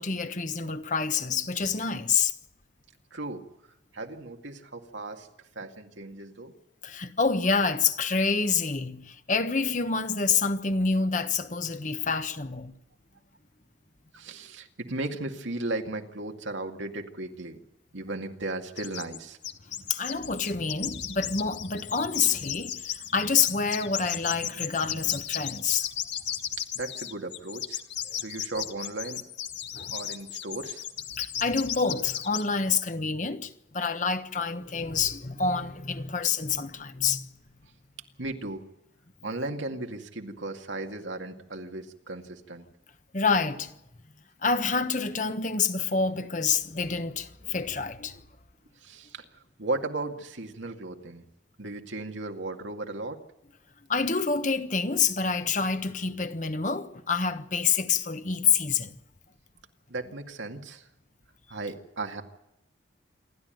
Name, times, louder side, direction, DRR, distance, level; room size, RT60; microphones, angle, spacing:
voice 1, 0.0-2.3 6.8-12.7 19.9-22.9 23.1-25.9 28.1-28.2 29.7-29.9 31.2-37.3 43.1-43.7 44.4-48.2 53.9-58.9, left 5 dB, 40° left, 1.2 m, -27 dB
voice 2, 3.1-3.4 3.9-5.3 5.6-6.5 14.1-17.6 17.9-19.4 22.1-22.3 26.7-27.8 28.2-29.2 29.9-30.8 38.2-38.6 39.2-42.7 48.8-49.3 49.6-51.2 51.6-53.2 59.9-60.9 61.5-62.2, right 2 dB, 85° right, 2.2 m, -36 dB
sound 1, 18.8-19.2 19.4-32.4, left 10 dB, 70° left, 1.6 m, -35 dB
27.5 x 12.5 x 9.2 m
head